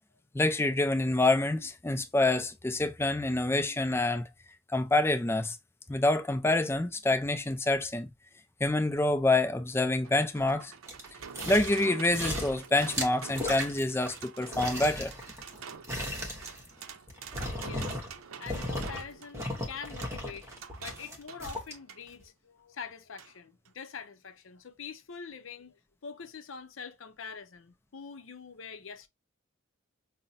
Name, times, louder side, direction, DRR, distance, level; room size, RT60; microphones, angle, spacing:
voice 1, 0.3-4.3 4.7-5.6 5.9-8.1 8.6-10.7 11.5-15.1, left 2 dB, 10° left, 0.4 m, -27 dB
sound 1, 9.5-22.0 23.2-23.3 23.7-23.8, right 6 dB, 85° right, 0.6 m, -47 dB
sound 2, 10.9-11.8 12.1-14.2 14.5-18.2 18.5-19.0 19.3-21.7 22.2-22.3, equal, 15° right, 0.9 m, -36 dB
voice 2, 17.6-18.0 18.4-20.5 20.8-25.7 26.0-29.1, left 6 dB, 70° left, 0.6 m, -44 dB
5.4 x 2.1 x 2.6 m
head